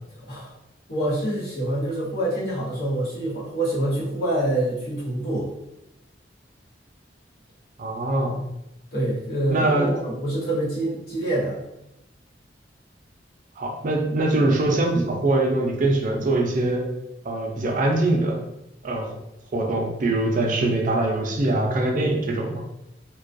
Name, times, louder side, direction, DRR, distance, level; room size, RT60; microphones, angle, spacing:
voice 1, 0.9-5.5 8.9-11.6, right 1 dB, 60° left, -7 dB, 1.1 m, -26 dB
voice 2, 7.8-8.4 9.5-9.9 13.6-16.8 17.2-18.4 18.8-19.2 19.5-22.6, right 2 dB, 45° right, 1 dB, 0.4 m, -23 dB
2.3 x 2.2 x 2.5 m, 0.87 s
head